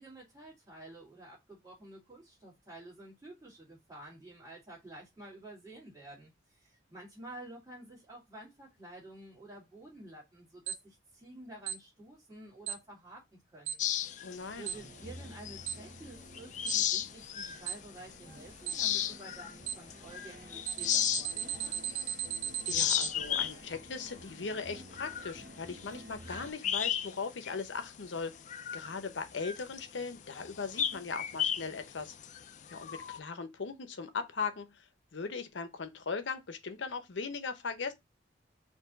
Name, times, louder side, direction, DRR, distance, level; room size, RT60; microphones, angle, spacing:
voice 1, 0.0-13.8 14.6-21.8, right 1 dB, 20° right, 1.9 m, -51 dB
Alarm, 10.7-10.8 11.7-11.8 12.7-12.8 13.7-13.8 14.7-14.8 15.7-15.8 16.7-16.8 17.7-17.8 18.7-18.8 19.7-19.8 20.7-23.1, right 9 dB, 75° right, 0.6 m, -35 dB
sound 1, 13.8-16.0 16.3-17.7 18.1-18.2 18.6-22.3 22.6-27.2 27.4-27.6 28.1-33.2, left 10 dB, 40° left, 0.3 m, -34 dB
voice 2, 14.2-14.7 22.7-28.3 28.7-32.1 32.7-37.9, left 4 dB, 80° left, 0.7 m, -39 dB
sound 2, 14.3-26.5, right 1 dB, 45° right, 0.9 m, -52 dB
4.6 x 2.8 x 3.9 m
head